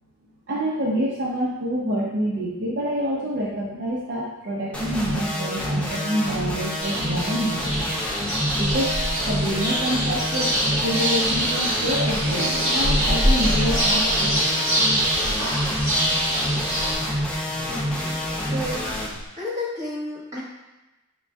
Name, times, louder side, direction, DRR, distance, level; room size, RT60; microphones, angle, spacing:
voice 1, 0.5-8.0 8.6-14.3, equal, 55° right, -6 dB, 0.6 m, -27 dB
sound 1, 4.7-19.1, equal, 5° left, 0.5 m, -28 dB
sound 2, 6.8-16.9, right 1 dB, 85° right, 1.2 m, -25 dB
sound 3, 7.2-19.3, equal, 50° left, 0.8 m, -32 dB
voice 2, 17.7-18.9 19.4-20.4, left 1 dB, 15° right, -8 dB, 1.3 m, -32 dB
6.6 x 2.5 x 2.2 m, 1.1 s
head